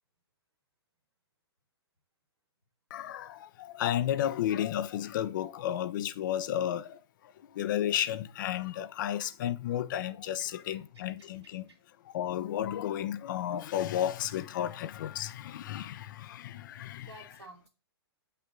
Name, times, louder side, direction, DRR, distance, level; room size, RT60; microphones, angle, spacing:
voice 1, 2.9-3.3 3.8-6.8 7.6-11.6 12.1-16.1 16.5-17.1, left 11 dB, 50° left, 0.7 m, -32 dB
voice 2, 10.4-11.8 17.0-17.7, right 2 dB, 85° right, 2.5 m, -54 dB
7.7 x 5.7 x 3.8 m
figure-of-eight pair, 115°, 13 cm